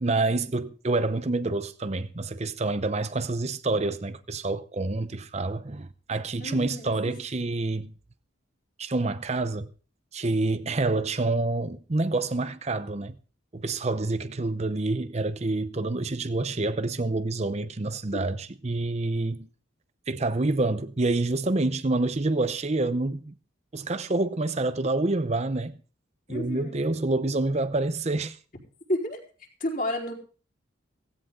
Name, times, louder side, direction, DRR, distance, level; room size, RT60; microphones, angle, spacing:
voice 1, 0.0-7.9 8.8-9.7 10.1-13.2 13.5-19.5 20.1-23.3 23.7-25.8 26.3-28.4, right 2 dB, 35° right, 0.7 m, -27 dB
voice 2, 6.4-6.9 18.1-18.2 26.3-26.8 28.9-30.1, left 1 dB, 45° left, 4.3 m, -31 dB
17.0 x 16.0 x 3.8 m
head